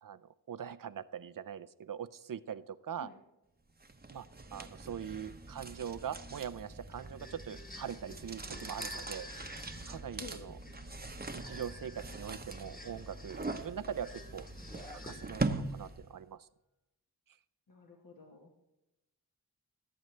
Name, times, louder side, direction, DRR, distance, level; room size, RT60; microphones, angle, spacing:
voice 1, 0.0-3.1 4.1-9.3 9.9-10.6 11.3-14.1 14.3-14.5 14.9-16.5, right 8 dB, 60° right, 14 dB, 0.6 m, -42 dB
sound 1, 3.8-16.2, right 2 dB, 25° right, 0.9 m, -42 dB
sound 2, 7.0-15.6, left 1 dB, 20° left, 1.6 m, -51 dB
voice 2, 17.7-18.5, left 3 dB, 60° left, 1 dB, 1.5 m, -50 dB
17.5 x 7.9 x 3.3 m, 0.95 s
wide cardioid pair, 65°, 38 cm